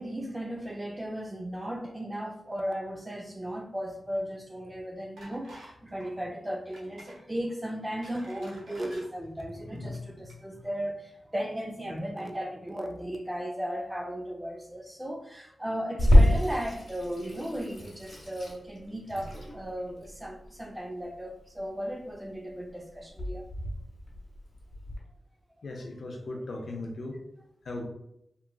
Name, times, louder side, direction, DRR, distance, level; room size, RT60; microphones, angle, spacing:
voice 1, 0.0-23.5, equal, 15° right, 0.5 m, -36 dB
sound 1, 5.2-5.7 6.0-6.2 6.7-7.2 7.7-9.1 9.8-10.0 10.3-10.4, right 1 dB, 85° right, 0.7 m, -50 dB
Water tap faucet / Sink (filling or washing), 16.0-25.0, left 1 dB, 50° left, 1.0 m, -27 dB
voice 2, 25.6-27.2 27.6-27.9, left 2 dB, 70° left, 0.5 m, -37 dB
3.0 x 2.3 x 2.3 m
cardioid pair, 50°, 0 cm